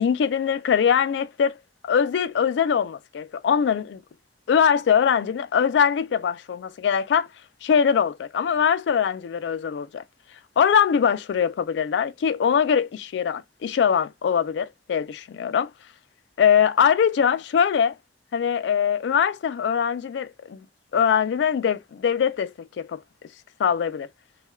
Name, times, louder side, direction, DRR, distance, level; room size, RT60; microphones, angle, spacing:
voice 1, 0.0-1.6 1.8-4.0 4.5-7.3 7.6-10.0 10.6-15.7 16.4-17.9 18.3-20.6 20.9-23.0 23.6-24.1, left 7 dB, 85° left, 0.3 m, -22 dB
2.2 x 2.2 x 2.9 m
head